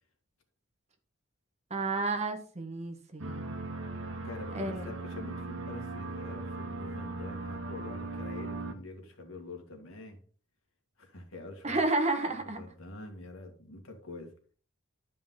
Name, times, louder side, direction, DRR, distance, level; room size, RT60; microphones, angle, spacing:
voice 1, 1.7-3.6 4.5-4.9 11.6-12.6, right 2 dB, 35° right, 1.4 m, -31 dB
sound 1, 3.2-8.7, right 2 dB, 80° right, 1.3 m, -38 dB
voice 2, 4.2-10.2 11.0-11.8 12.4-14.3, left 2 dB, 80° left, 2.1 m, -46 dB
11.5 x 5.3 x 3.8 m
head